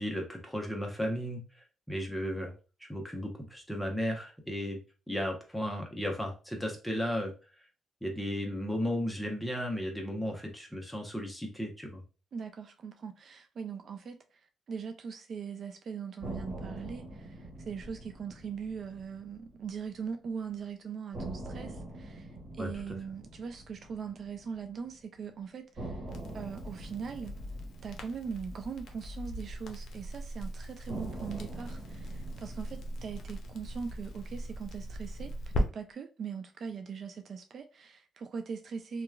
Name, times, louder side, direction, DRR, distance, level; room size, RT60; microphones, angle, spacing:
voice 1, 0.0-2.5 2.8-4.8 5.1-7.3 8.0-12.0 22.6-22.7, equal, 5° left, 0.9 m, -34 dB
voice 2, 12.3-14.4 14.7-22.3 22.6-26.0 26.3-27.3 27.8-35.3 35.6-39.0, right 6 dB, 55° right, 0.3 m, -41 dB
sound 1, 16.2-20.3 20.6-20.7 21.1-25.2 25.8-30.1 30.9-35.2, right 1 dB, 35° right, 1.3 m, -45 dB
Crackle, 26.1-35.6, equal, 65° left, 0.6 m, -39 dB
2.9 x 2.3 x 2.3 m
cardioid pair, 90°, 0 cm